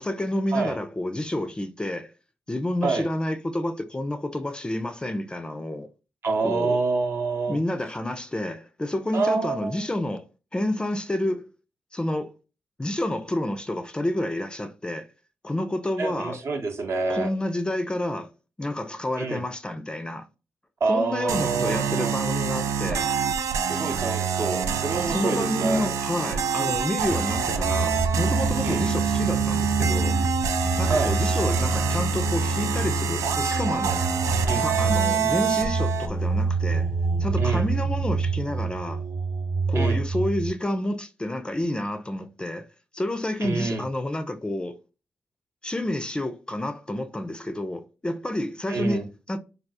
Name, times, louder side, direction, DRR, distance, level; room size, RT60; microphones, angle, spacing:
voice 1, 0.0-2.1 2.5-5.9 6.4-6.8 7.5-10.2 10.5-11.4 11.9-12.3 12.8-15.1 15.4-16.4 17.1-18.3 18.6-20.2 20.9-23.1 25.1-30.2 30.8-34.0 34.6-36.9 37.2-39.0 39.7-42.6 42.9-44.7 45.6-49.4, left 1 dB, 15° left, 0.4 m, -29 dB
voice 2, 6.2-7.6 9.1-9.8 16.0-17.3 19.2-19.4 20.8-22.2 22.9-23.0 23.7-25.9 26.6-26.8 28.6-28.8 30.9-31.1 34.5-34.7 37.4-37.7 39.7-40.0 43.4-43.9 48.7-49.1, right 4 dB, 55° right, 0.7 m, -27 dB
sound 1, 21.3-36.1, right 7 dB, 85° right, 0.3 m, -26 dB
sound 2, 27.1-40.5, right 3 dB, 25° right, 0.9 m, -27 dB
3.3 x 2.3 x 2.6 m
cardioid pair, 70°, 5 cm